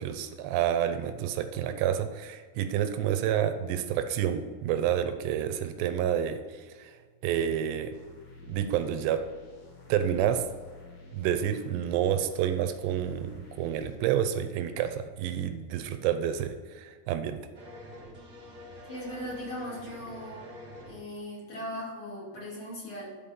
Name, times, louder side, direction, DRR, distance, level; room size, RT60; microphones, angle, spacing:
voice 1, 0.0-6.4 6.8-6.9 7.2-8.0 8.4-9.2 9.9-10.4 11.1-17.4, right 10 dB, 80° right, 9 dB, 2.7 m, -29 dB
sound 1, 7.9-14.0, left 3 dB, 60° left, 1.7 m, -51 dB
sound 2, 17.5-20.9, left 1 dB, 55° right, 0.7 m, -46 dB
voice 2, 18.9-20.6 20.9-23.1, left 1 dB, 35° left, -6 dB, 3.0 m, -39 dB
11.5 x 5.1 x 5.2 m, 1.5 s
omnidirectional pair, 5.1 m